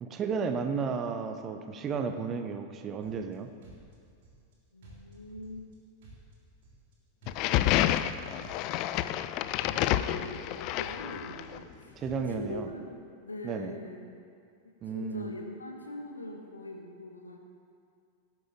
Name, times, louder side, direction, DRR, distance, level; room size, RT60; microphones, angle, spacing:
voice 1, 0.0-3.5 12.0-12.7 13.4-13.7 14.8-15.3, right 5 dB, 30° right, 7 dB, 0.9 m, -33 dB
sound 1, 3.0-3.3 3.6-4.5 4.8-5.7 6.0-6.9 7.2-8.1 8.4-9.3 9.6-10.5 10.8-11.7 12.0-12.6, right 2 dB, 55° right, 3.6 m, -53 dB
voice 2, 4.7-5.7 9.6-14.1 14.8-17.4, left 1 dB, 80° left, 1 dB, 1.6 m, -43 dB
sound 2, 7.3-11.6, left 13 dB, 40° left, 0.4 m, -29 dB
19.0 x 9.2 x 3.9 m, 2.3 s
figure-of-eight pair, 90°, 0 cm